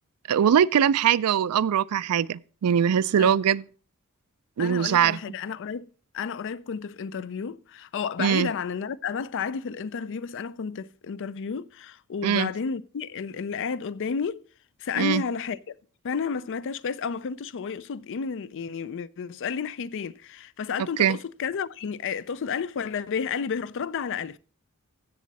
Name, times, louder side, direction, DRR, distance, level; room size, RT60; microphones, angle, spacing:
voice 1, 0.3-3.6 4.6-5.2 8.2-8.5 12.2-12.5 15.0-15.2 21.0-21.2, right 8 dB, 85° right, 0.4 m, -22 dB
voice 2, 4.6-5.9 6.1-14.4 14.8-15.7 16.0-24.4, left 6 dB, 55° left, 0.4 m, -31 dB
15.0 x 7.3 x 4.1 m
head